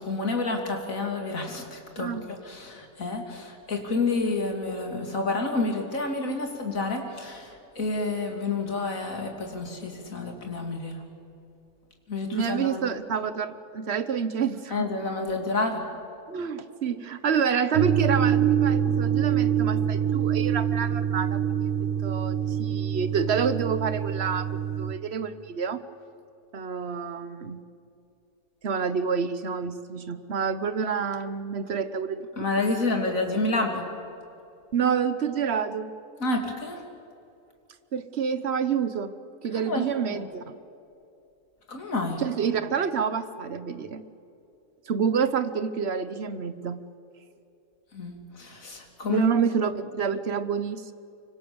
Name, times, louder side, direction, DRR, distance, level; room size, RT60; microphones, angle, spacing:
voice 1, 0.0-11.0 12.1-12.8 14.7-15.8 32.4-33.9 36.2-36.8 39.5-40.3 41.7-42.2 47.9-49.3, left 3 dB, 65° left, 3 dB, 3.3 m, -29 dB
voice 2, 12.3-14.9 16.3-21.7 22.0-25.8 26.5-27.7 28.6-32.2 34.7-35.9 37.9-39.1 39.4-40.6 42.2-44.0 44.9-46.8 49.1-50.9, right 6 dB, 50° right, 12 dB, 1.2 m, -28 dB
sound 1, 17.7-24.9, right 9 dB, 70° right, 1.3 m, -25 dB
25.0 x 25.0 x 7.1 m, 2.6 s
omnidirectional pair, 1.6 m